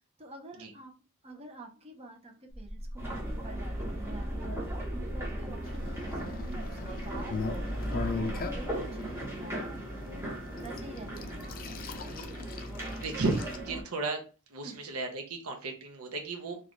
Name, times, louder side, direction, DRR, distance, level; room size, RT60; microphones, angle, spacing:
voice 1, 0.2-0.9 1.2-10.2 10.6-12.0 14.6-15.0, right 2 dB, 30° right, 2 dB, 0.7 m, -48 dB
sound 1, 2.5-9.0, equal, 10° left, 1.0 m, -41 dB
sound 2, 3.0-13.8, right 1 dB, 10° right, 1.1 m, -37 dB
sound 3, 5.6-13.6, left 4 dB, 40° left, 0.4 m, -40 dB
voice 2, 13.0-14.2 14.5-16.6, right 3 dB, 70° right, 3 dB, 0.7 m, -34 dB
3.9 x 2.4 x 3.0 m, 0.34 s
head